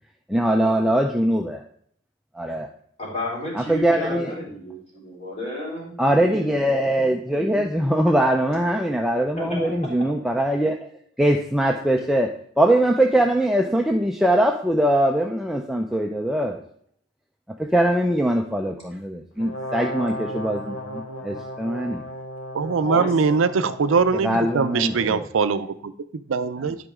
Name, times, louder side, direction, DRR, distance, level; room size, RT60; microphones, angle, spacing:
voice 1, 0.3-1.6 2.4-2.7 3.6-4.3 6.0-10.8 11.2-12.3 12.6-16.6 17.7-22.0 24.2-25.3, right 1 dB, ahead, 2 dB, 0.4 m, -22 dB
voice 2, 3.0-6.5 9.4-9.7 22.7-23.3, left 1 dB, 35° left, -5 dB, 3.3 m, -32 dB
Brass instrument, 19.4-25.2, equal, 85° left, 1.8 m, -35 dB
voice 3, 22.5-26.8, right 5 dB, 75° right, 12 dB, 0.5 m, -22 dB
11.0 x 5.1 x 3.6 m, 0.63 s
head